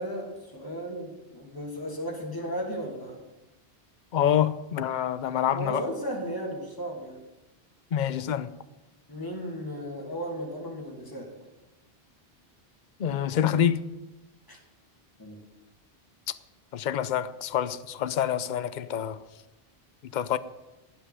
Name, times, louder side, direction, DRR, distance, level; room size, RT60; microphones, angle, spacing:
voice 1, 0.0-3.2 5.5-7.2 9.1-11.3 14.5-14.6 15.2-15.4, equal, 20° left, 2.6 m, -35 dB
voice 2, 4.1-5.8 7.9-8.5 13.0-13.8 16.7-19.2 20.1-20.4, left 9 dB, 55° left, 0.7 m, -26 dB
16.5 x 5.6 x 9.8 m
omnidirectional pair, 1.0 m